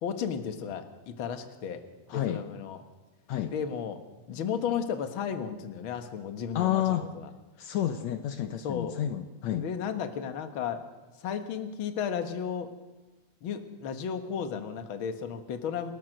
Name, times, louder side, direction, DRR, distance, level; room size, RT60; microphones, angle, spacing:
voice 1, 0.0-1.8 2.1-2.8 3.5-4.0 4.3-7.3 8.6-9.0 9.5-10.8 11.2-12.7 13.4-15.9, left 7 dB, 50° left, 7 dB, 2.0 m, -34 dB
voice 2, 2.1-2.4 3.3-3.5 6.6-7.1 7.6-9.7, left 11 dB, 75° left, 7 dB, 2.2 m, -30 dB
29.5 x 14.0 x 6.5 m, 1.1 s
omnidirectional pair, 3.3 m